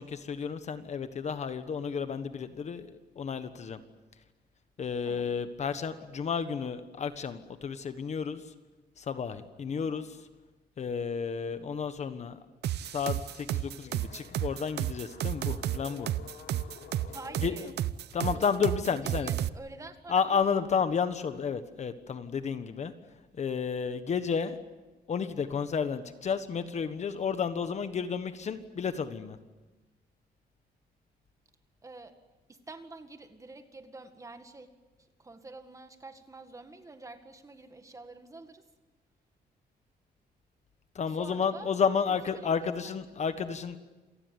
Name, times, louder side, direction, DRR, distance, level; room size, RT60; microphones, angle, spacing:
voice 1, 0.0-3.8 4.8-8.4 9.0-10.2 10.8-12.4 12.9-16.1 17.4-17.5 18.1-19.3 20.1-22.9 23.4-24.6 25.1-29.4 40.9-43.8, left 6 dB, 40° left, 11 dB, 1.4 m, -31 dB
sound 1, 12.6-19.5, right 13 dB, 80° right, 0.8 m, -32 dB
sound 2, 13.9-17.7, left 9 dB, 65° left, 1.6 m, -50 dB
voice 2, 17.1-17.7 18.2-18.5 18.9-20.5 31.8-32.2 32.5-34.7 35.0-38.6 41.1-41.8 42.1-42.9, right 3 dB, 20° right, 8 dB, 1.9 m, -47 dB
27.5 x 19.0 x 9.5 m, 1.2 s
wide cardioid pair, 165°, 17 cm